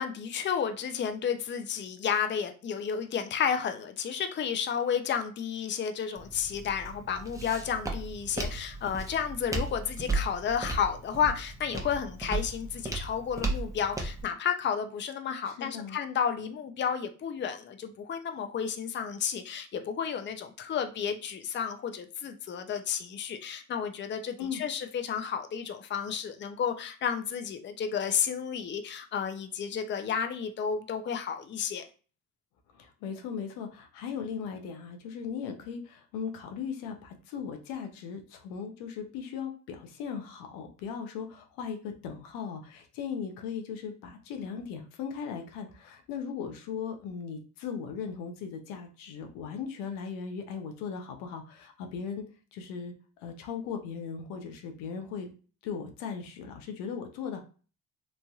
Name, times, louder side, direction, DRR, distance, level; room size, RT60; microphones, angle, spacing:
voice 1, 0.0-31.9, left 7 dB, 35° left, 7 dB, 0.5 m, -32 dB
Walk footsteps, 6.2-14.2, right 2 dB, 10° right, 0.8 m, -35 dB
voice 2, 15.4-16.0 24.4-24.6 32.7-52.3 52.5-52.9 53.2-55.3 55.6-57.4, left 6 dB, 85° left, 5 dB, 0.6 m, -38 dB
3.1 x 2.5 x 2.3 m, 0.37 s
supercardioid pair, 60°, 33 cm